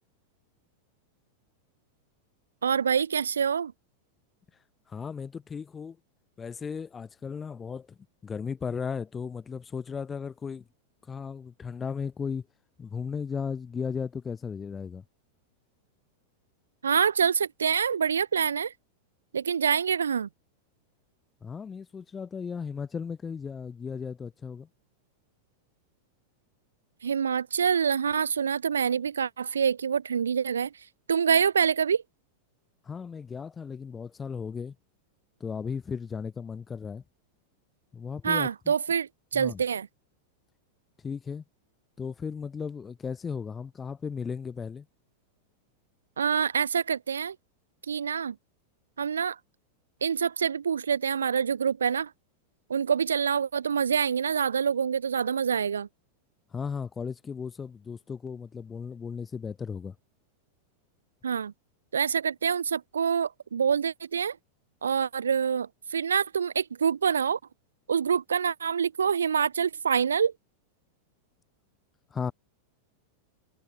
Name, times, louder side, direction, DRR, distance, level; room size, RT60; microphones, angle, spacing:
voice 1, 2.6-3.7 16.8-18.7 19.3-20.3 27.0-30.7 31.1-32.0 38.2-39.9 46.2-47.4 47.9-48.4 49.0-49.4 50.0-52.1 52.7-55.9 61.2-61.5 61.9-64.4 64.8-67.4 67.9-70.3, right 7 dB, 70° right, 0.3 m, -26 dB
voice 2, 4.9-6.0 6.4-10.7 11.0-12.5 12.8-15.0 21.4-24.7 32.8-34.8 35.4-37.0 37.9-38.7 39.3-39.6 41.0-41.4 42.0-44.9 56.5-60.0 72.1-72.3, left 6 dB, 20° left, 0.5 m, -36 dB
figure-of-eight pair, 90°, 0 cm